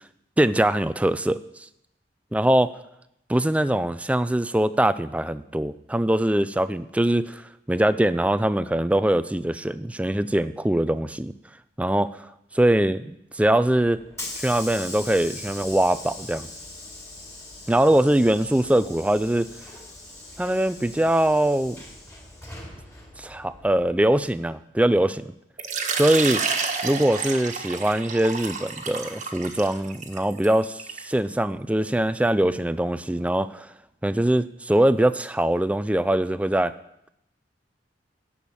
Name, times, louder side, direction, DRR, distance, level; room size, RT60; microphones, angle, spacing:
voice 1, 0.4-1.4 2.3-2.7 3.3-7.4 7.7-11.3 11.8-12.2 12.5-14.0 14.4-16.5 17.7-19.5 20.4-21.8 23.2-25.3 25.9-26.4 26.8-33.7 34.0-36.7, right 1 dB, 5° right, 14 dB, 0.4 m, -22 dB
Hiss / Sliding door, 13.5-24.3, left 2 dB, 15° left, 4.1 m, -41 dB
Water / Liquid, 25.6-31.1, right 5 dB, 40° right, 1.4 m, -30 dB
10.5 x 7.3 x 8.5 m, 0.80 s
head